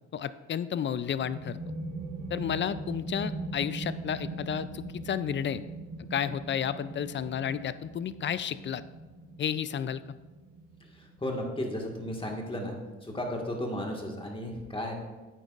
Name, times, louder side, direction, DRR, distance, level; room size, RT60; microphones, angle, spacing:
voice 1, 0.1-1.6 2.3-5.6 6.1-8.8 9.4-10.0, left 8 dB, 40° left, 15 dB, 0.4 m, -32 dB
sound 1, 0.9-12.2, right 2 dB, 90° right, 1.3 m, -41 dB
voice 2, 10.8-12.8 13.0-14.9, left 1 dB, 15° left, 1 dB, 1.7 m, -34 dB
9.3 x 8.7 x 2.5 m, 1.2 s
cardioid pair, 90°, 30 cm